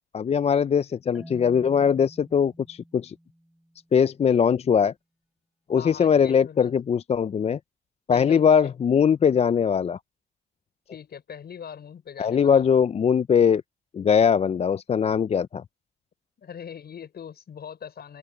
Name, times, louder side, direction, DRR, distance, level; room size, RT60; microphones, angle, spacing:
voice 1, 0.1-3.1 3.9-4.9 5.7-7.6 8.1-10.0 12.2-13.6 13.9-15.6, left 7 dB, 30° left, 0.4 m, -21 dB
Marimba xylophone, 1.1-4.1, equal, 5° right, 3.1 m, -49 dB
voice 2, 5.8-6.7 8.1-8.7 10.9-12.7 16.4-18.2, left 8 dB, 55° left, 5.9 m, -41 dB
open air
cardioid pair, 90°, 20 cm